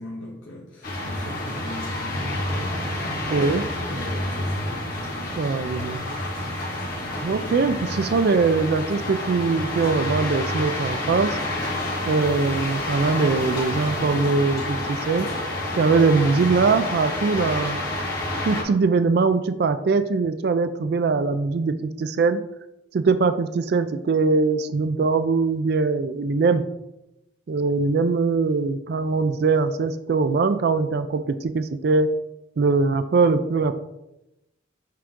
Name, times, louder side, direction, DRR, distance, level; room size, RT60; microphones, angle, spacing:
voice 1, 0.0-2.7 3.0-3.3 3.9-4.8, left 1 dB, 75° left, -2 dB, 1.0 m, -39 dB
sound 1, 0.8-18.6, left 1 dB, 45° left, 1.9 m, -29 dB
voice 2, 3.3-3.7 5.4-6.0 7.2-11.4 12.1-15.3 15.8-17.8 18.4-22.4 22.9-26.6 27.5-32.1 32.6-33.7, right 4 dB, 55° right, 10 dB, 0.3 m, -22 dB
sound 2, 8.0-15.3, left 2 dB, 20° left, 0.6 m, -43 dB
7.4 x 3.6 x 3.7 m, 0.91 s
head